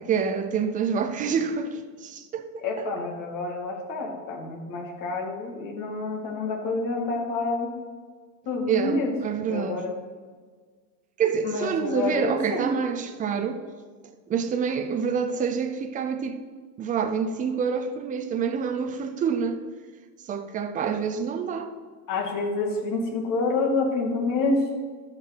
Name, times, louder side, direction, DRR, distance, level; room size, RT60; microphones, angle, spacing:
voice 1, 0.0-2.9 8.7-9.0 9.2-9.8 11.2-13.6 14.3-16.4 16.8-19.6 20.3-21.7, right 6 dB, 15° right, 0.4 m, -27 dB
voice 2, 2.6-7.7 8.5-9.1 9.5-9.9 11.4-12.7 22.1-24.6, left 3 dB, 40° left, 2.1 m, -28 dB
12.5 x 4.9 x 5.9 m
supercardioid pair, 135°, 48 cm